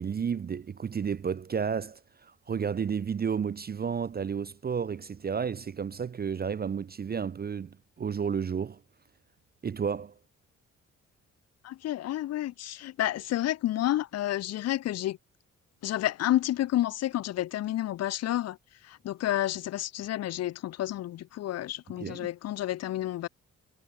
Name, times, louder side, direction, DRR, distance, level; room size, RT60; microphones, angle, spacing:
voice 1, 0.0-8.8 9.6-10.1 22.0-22.3, right 6 dB, 25° right, 0.5 m, -32 dB
voice 2, 11.6-15.2 15.8-18.6 18.9-23.3, left 13 dB, 45° left, 0.4 m, -30 dB
hypercardioid pair, 40°, 35 cm